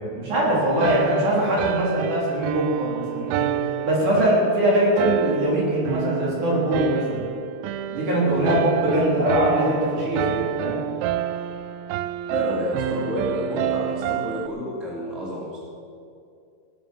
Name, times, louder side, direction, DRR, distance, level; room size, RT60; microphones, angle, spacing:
voice 1, 0.0-3.5 3.8-7.2 7.9-10.8, right 1 dB, 50° right, -4 dB, 4.6 m, -22 dB
sound 1, 0.8-14.5, right 11 dB, 85° right, 2.2 m, -29 dB
voice 2, 8.2-8.6 12.3-15.6, left 1 dB, ahead, -4 dB, 1.8 m, -29 dB
18.5 x 9.2 x 7.3 m, 2.5 s
omnidirectional pair, 4.9 m